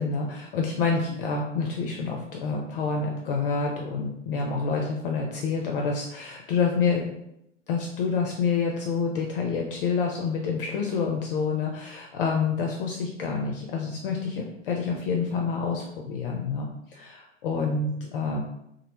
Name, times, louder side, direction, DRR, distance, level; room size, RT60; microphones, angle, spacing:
voice 1, 0.0-7.1 7.7-18.4, left 5 dB, 50° left, 0 dB, 0.4 m, -28 dB
2.4 x 2.0 x 2.9 m, 0.80 s
figure-of-eight pair, 90°, 36 cm